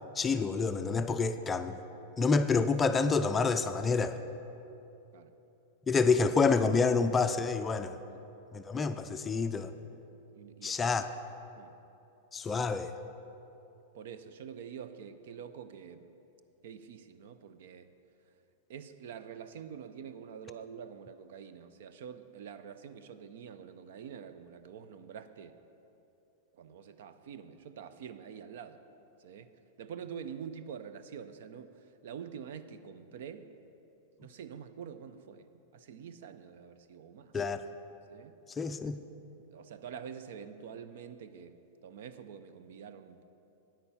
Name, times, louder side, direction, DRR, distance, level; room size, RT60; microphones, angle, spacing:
voice 1, 0.2-1.8 2.2-4.2 5.9-8.0 8.5-9.7 10.6-11.1 12.3-12.9 37.3-37.6 38.6-39.0, left 4 dB, 15° left, 9 dB, 0.4 m, -28 dB
voice 2, 10.3-11.0 11.6-11.7 13.9-16.1 16.6-17.9 18.7-25.6 26.5-28.8 29.2-29.5 29.8-33.5 34.2-37.4 38.1-38.3 39.5-41.6 41.8-43.2, right 7 dB, 70° right, 11 dB, 0.6 m, -46 dB
9.2 x 8.6 x 5.6 m, 2.9 s
supercardioid pair, 140°, 0 cm